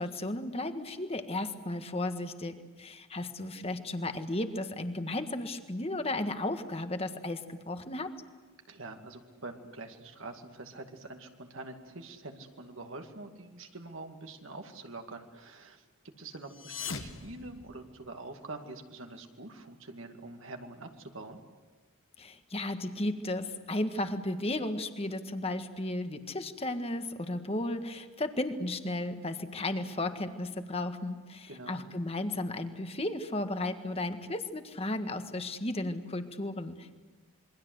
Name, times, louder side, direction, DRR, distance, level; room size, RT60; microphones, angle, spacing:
voice 1, 0.0-8.1 22.2-37.0, left 1 dB, 30° left, 8 dB, 1.6 m, -34 dB
voice 2, 8.7-15.8 16.2-21.4 31.5-31.8, right 2 dB, 70° right, 4 dB, 2.3 m, -45 dB
sound 1, 16.4-18.3, left 5 dB, 70° left, 1.8 m, -42 dB
27.5 x 23.5 x 8.0 m, 1.3 s
head